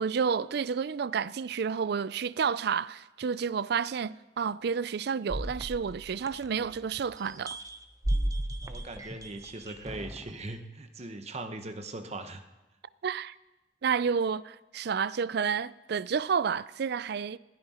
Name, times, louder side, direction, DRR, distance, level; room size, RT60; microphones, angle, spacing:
voice 1, 0.0-7.6 13.0-13.3 13.8-17.4, right 6 dB, 60° right, 0.4 m, -30 dB
sound 1, 5.3-6.9 7.2-10.3, right 1 dB, 20° right, 0.8 m, -34 dB
voice 2, 8.6-12.4, right 2 dB, 35° right, 1.1 m, -40 dB
20.5 x 14.5 x 4.3 m
head